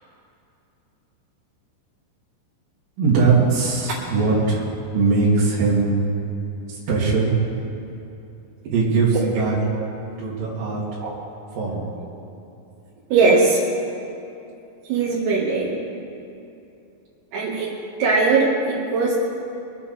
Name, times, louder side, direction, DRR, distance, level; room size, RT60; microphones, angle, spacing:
voice 1, 3.0-4.6 4.9-6.0 6.9-7.3 8.7-9.6 10.2-10.8 11.5-11.8, right 4 dB, 60° right, -7 dB, 4.0 m, -20 dB
voice 2, 13.1-13.6 14.9-15.7 17.3-17.7 18.0-19.1, right 4 dB, 80° right, -7 dB, 4.1 m, -19 dB
24.5 x 8.9 x 4.2 m, 2.8 s
omnidirectional pair, 4.6 m